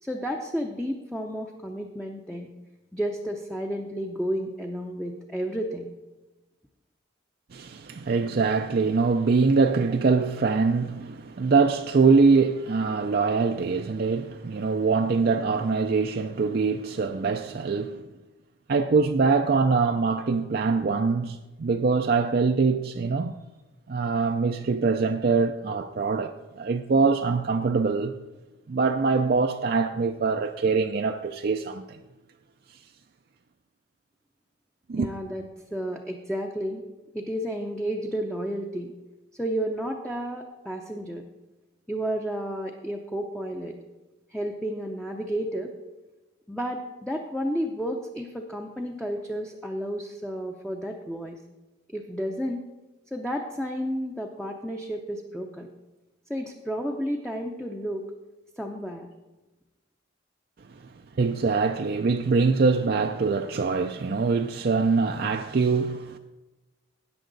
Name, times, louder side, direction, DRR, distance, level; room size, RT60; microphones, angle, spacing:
voice 1, 0.0-2.5 2.9-5.9 35.0-35.4 35.7-36.8 37.1-38.9 39.3-41.2 41.9-43.7 44.3-45.7 46.5-51.4 51.9-52.6 53.1-55.7 56.3-58.0 58.6-59.1, equal, 5° left, 0.6 m, -31 dB
voice 2, 7.5-18.0 18.7-23.3 23.9-28.2 28.7-32.0 34.9-35.1 60.8-66.2, right 4 dB, 50° right, 0.4 m, -23 dB
14.0 x 9.2 x 3.9 m
head